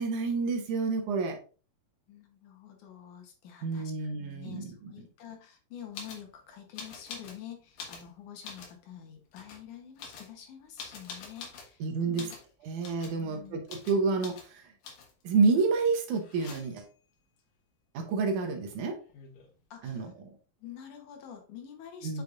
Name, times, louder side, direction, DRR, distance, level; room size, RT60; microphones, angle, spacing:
voice 1, 0.0-1.4 3.6-4.9 11.8-12.3 12.6-14.7 15.2-16.9 17.9-19.0 19.8-20.1 22.0-22.2, right 4 dB, 75° right, 4 dB, 2.2 m, -29 dB
voice 2, 2.1-12.4 12.7-12.8 13.2-13.6 19.7-20.1 20.6-22.2, left 9 dB, 70° left, 4 dB, 2.3 m, -47 dB
sound 1, 5.9-6.3 6.8-7.4 7.7-8.8 9.3-9.6 10.0-11.7 12.2-12.5 12.8-13.2 13.7-14.0 14.2-14.5 14.8-15.2 16.1-16.9 18.7-18.8 19.0-19.6, left 5 dB, 85° left, 3.1 m, -45 dB
7.8 x 5.4 x 2.4 m, 0.37 s
omnidirectional pair, 3.9 m